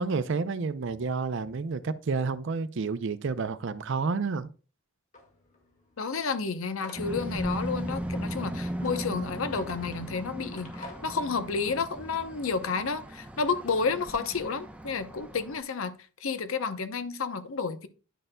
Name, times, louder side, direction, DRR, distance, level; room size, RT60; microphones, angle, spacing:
voice 1, 0.0-4.5, right 4 dB, 60° right, 0.5 m, -30 dB
sound 1, 5.1-11.4, left 1 dB, 35° left, 1.8 m, -48 dB
voice 2, 6.0-15.9 16.2-17.9, left 5 dB, 75° left, 0.7 m, -31 dB
sound 2, 6.9-15.6, right 1 dB, 5° right, 0.7 m, -37 dB
10.0 x 6.6 x 2.2 m
head